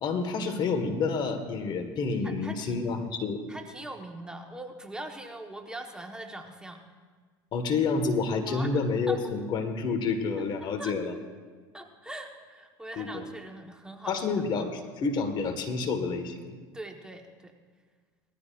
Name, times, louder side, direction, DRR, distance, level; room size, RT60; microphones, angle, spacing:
voice 1, 0.0-3.4 7.5-11.1 13.0-13.3 14.1-16.5, left 4 dB, 45° left, 7 dB, 1.6 m, -29 dB
voice 2, 2.2-2.8 3.5-6.8 8.5-9.2 10.6-11.0 11.7-14.2 16.7-17.5, right 1 dB, 5° right, 3 dB, 1.3 m, -42 dB
19.5 x 14.5 x 2.5 m, 1.5 s
hypercardioid pair, 90°, 10 cm